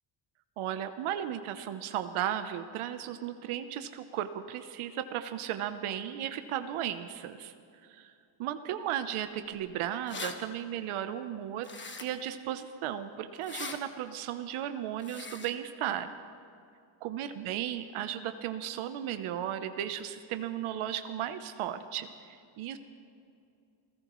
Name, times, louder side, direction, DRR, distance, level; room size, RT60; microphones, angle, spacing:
voice 1, 0.6-7.5 7.9-8.1 8.4-11.7 12.0-16.1 17.0-22.8, right 10 dB, 85° right, 10 dB, 0.9 m, -35 dB
sound 1, 9.6-9.7 9.9-10.3 11.6-12.3 13.4-13.8 15.0-15.5, left 3 dB, 25° left, 1.4 m, -40 dB
29.0 x 16.0 x 3.1 m, 2.5 s
cardioid pair, 115°, 48 cm